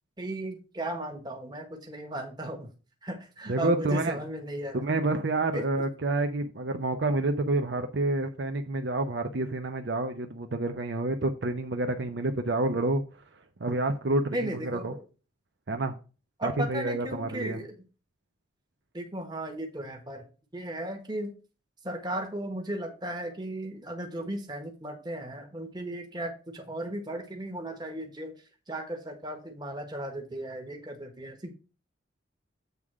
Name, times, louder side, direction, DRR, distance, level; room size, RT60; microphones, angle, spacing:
voice 1, 0.2-2.7 3.0-4.8 5.5-5.7 14.3-15.0 16.4-17.7 18.9-20.2 20.5-21.3 21.8-28.3 28.7-31.5, right 1 dB, 20° right, 1.3 m, -36 dB
voice 2, 3.5-4.2 4.7-13.0 13.6-14.9 15.7-15.9 16.4-17.6, right 2 dB, 55° right, 0.7 m, -28 dB
8.1 x 3.7 x 6.1 m
head